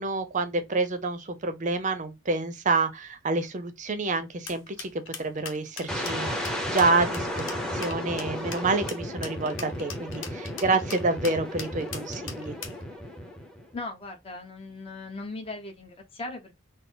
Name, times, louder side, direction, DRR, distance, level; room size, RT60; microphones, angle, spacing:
voice 1, 0.0-4.9 5.2-12.5, right 3 dB, 40° right, 0.6 m, -28 dB
sound 1, 4.5-12.8, left 6 dB, 80° left, 0.9 m, -40 dB
sound 2, 5.9-13.7, equal, 5° left, 0.8 m, -33 dB
voice 2, 13.7-16.6, left 2 dB, 30° left, 0.9 m, -38 dB
4.0 x 2.0 x 3.8 m
head